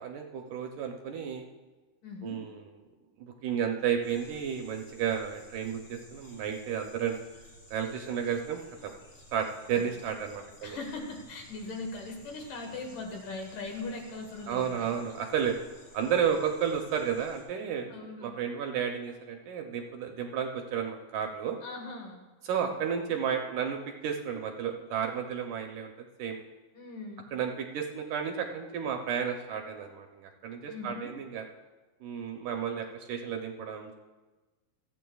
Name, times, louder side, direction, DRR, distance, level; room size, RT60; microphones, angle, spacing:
voice 1, 0.0-1.5 2.2-2.6 3.2-7.2 7.7-8.9 9.3-10.8 14.5-15.5 15.9-21.6 22.4-26.4 27.3-31.4 32.0-34.0, right 7 dB, 75° right, 3 dB, 2.1 m, -32 dB
voice 2, 2.0-2.4 9.8-9.9 10.6-14.9 17.9-18.3 21.6-22.2 26.7-27.3 30.7-31.2, left 3 dB, 65° left, 2 dB, 2.9 m, -40 dB
sound 1, 4.0-17.4, left 1 dB, 45° left, 3.2 m, -55 dB
27.0 x 9.0 x 2.3 m, 1.2 s
omnidirectional pair, 4.2 m